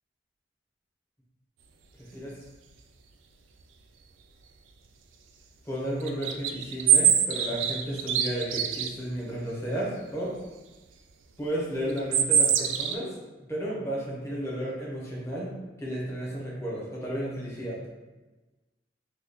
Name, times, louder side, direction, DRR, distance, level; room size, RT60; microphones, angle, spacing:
voice 1, 5.6-10.3 11.4-13.1 13.4-15.5 15.8-17.8, equal, 15° left, -6 dB, 0.9 m, -33 dB
sound 1, 6.0-8.9 11.9-12.9, right 8 dB, 80° right, 0.3 m, -23 dB
3.0 x 2.3 x 3.8 m, 1.2 s
head